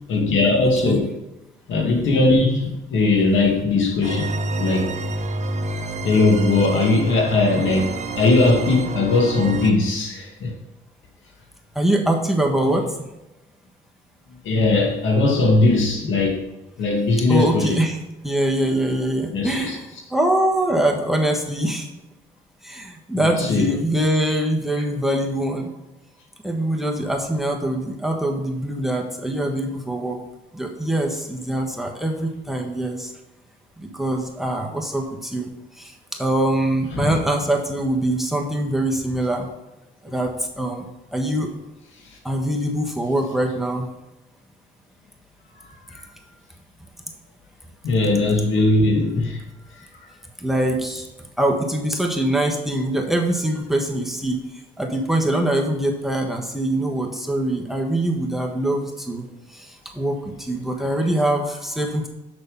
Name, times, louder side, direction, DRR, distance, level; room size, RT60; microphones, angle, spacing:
voice 1, 0.1-1.0 1.7-4.9 6.0-10.5 14.4-16.4 16.8-17.8 19.3-19.8 23.1-23.7 36.9-37.2 45.9-46.0 47.8-49.4 50.0-50.1, left 3 dB, 75° left, 1 dB, 2.0 m, -19 dB
sound 1, 4.0-9.7, right 2 dB, 35° right, 0.9 m, -28 dB
voice 2, 11.7-12.8 17.3-18.0 18.2-21.9 22.6-25.7 26.4-30.2 30.5-33.1 33.8-35.9 36.2-39.5 40.0-40.3 40.6-40.8 41.1-41.5 42.2-43.9 50.4-51.1 51.4-54.4 54.8-59.3 59.5-62.1, right 1 dB, ahead, 2 dB, 1.4 m, -23 dB
6.5 x 6.0 x 5.4 m, 0.95 s
cardioid pair, 90°, 20 cm